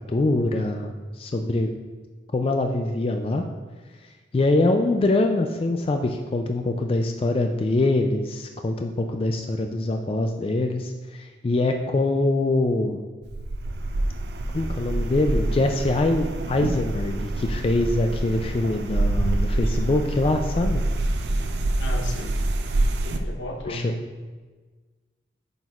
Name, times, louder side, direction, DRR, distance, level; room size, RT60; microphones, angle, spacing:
voice 1, 0.1-1.7 2.3-3.4 4.3-13.0 14.5-20.8 23.7-23.9, left 2 dB, 30° left, 4 dB, 0.3 m, -24 dB
sound 1, 13.2-23.2, right 2 dB, 60° right, 0.5 m, -26 dB
voice 2, 21.8-22.4 23.2-24.0, left 1 dB, 80° left, 1 dB, 0.9 m, -34 dB
8.9 x 6.1 x 2.4 m, 1.3 s
head